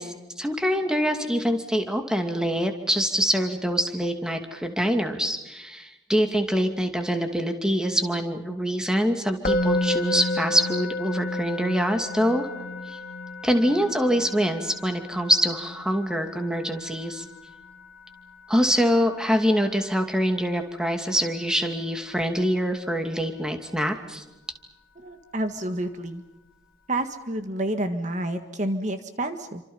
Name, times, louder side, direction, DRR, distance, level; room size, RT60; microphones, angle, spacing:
voice 1, 0.0-12.5 12.9-13.0 13.4-17.2 18.5-24.2, equal, 5° right, 5 dB, 2.5 m, -25 dB
Musical instrument, 9.4-20.6, left 2 dB, 50° left, 2.2 m, -32 dB
voice 2, 24.9-26.2 26.9-29.6, right 1 dB, 40° right, 7 dB, 1.7 m, -29 dB
29.0 x 26.0 x 5.6 m, 1.0 s
head